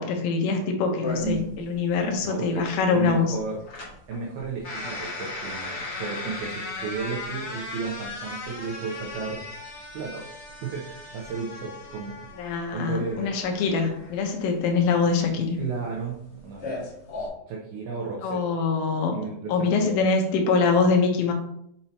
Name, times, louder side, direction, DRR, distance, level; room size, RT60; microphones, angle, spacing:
voice 1, 0.0-3.3 12.4-15.6 18.2-19.2 19.5-21.3, left 4 dB, 75° left, 2 dB, 2.2 m, -24 dB
sound 1, 1.0-17.3, left 2 dB, 45° left, 1.3 m, -37 dB
voice 2, 2.2-2.6 2.9-3.6 4.1-9.5 9.9-10.2 10.6-12.4 12.7-13.3 15.6-16.9 17.5-18.4 19.1-20.1, right 5 dB, 75° right, -3 dB, 2.5 m, -33 dB
6.8 x 5.4 x 3.0 m, 0.74 s
omnidirectional pair, 5.4 m